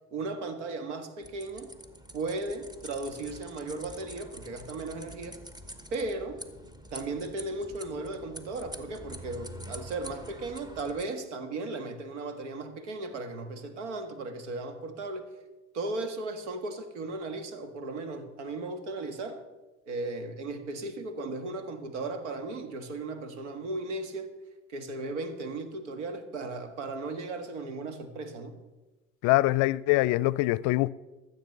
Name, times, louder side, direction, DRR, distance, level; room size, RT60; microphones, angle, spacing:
voice 1, 0.1-1.7 2.1-5.4 5.9-6.4 6.9-15.3 15.7-19.4 19.9-24.3 24.7-28.6, right 2 dB, 85° right, 1.7 m, -36 dB
sound 1, 1.2-11.0, equal, 10° right, 1.2 m, -46 dB
voice 2, 29.2-30.9, left 19 dB, 60° left, 0.5 m, -24 dB
13.5 x 7.8 x 6.7 m
hypercardioid pair, 85°, 35 cm